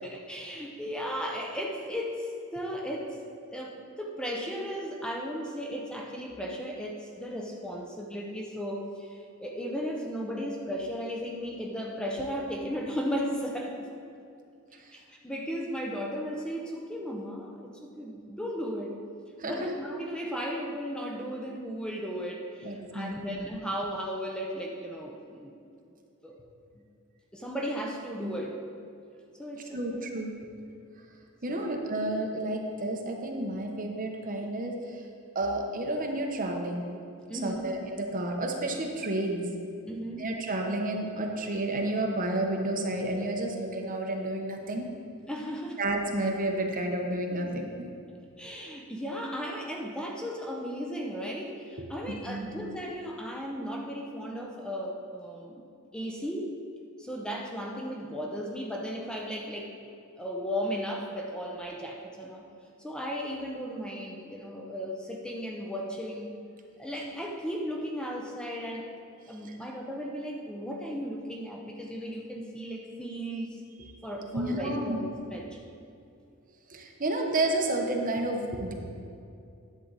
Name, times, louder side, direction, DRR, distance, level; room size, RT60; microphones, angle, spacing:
voice 1, 0.0-3.2 3.5-13.9 14.9-19.0 19.4-25.5 26.2-26.4 27.3-28.6 29.4-30.0 31.5-31.7 37.3-37.7 39.9-40.3 45.3-45.8 48.4-55.7 55.9-56.5 57.0-59.9 60.2-62.4 62.8-66.3 66.8-68.9 69.3-73.6 74.0-75.6, equal, 5° left, -1 dB, 0.7 m, -35 dB
voice 2, 22.6-23.6 28.2-28.3 29.7-30.3 31.4-35.1 35.3-36.9 37.4-39.5 40.2-44.9 45.8-47.9 51.8-51.9 52.3-52.5 73.8-73.9 74.3-75.0 76.7-78.7, right 1 dB, 40° right, 2 dB, 1.0 m, -31 dB
11.0 x 7.5 x 4.0 m, 2.5 s
head